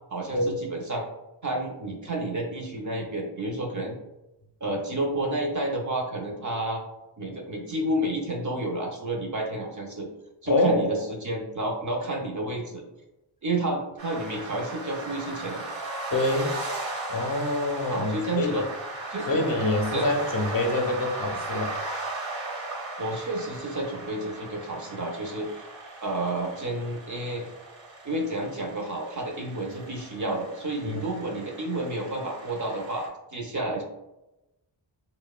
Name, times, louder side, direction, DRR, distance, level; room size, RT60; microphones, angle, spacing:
voice 1, 0.1-1.0 1.4-4.0 4.6-6.8 7.2-10.1 10.4-12.8 13.4-15.6 17.9-18.7 19.1-19.4 19.9-20.1 23.0-25.6 26.0-27.4 28.0-33.8, right 1 dB, 40° right, 1 dB, 0.5 m, -30 dB
voice 2, 10.5-11.0 16.1-16.6 17.1-18.6 19.3-21.7 30.9-31.0, left 2 dB, 50° left, 3 dB, 0.5 m, -26 dB
sound 1, 14.0-33.1, right 2 dB, 70° right, 0.8 m, -37 dB
2.7 x 2.1 x 2.3 m, 0.95 s
wide cardioid pair, 45°, 46 cm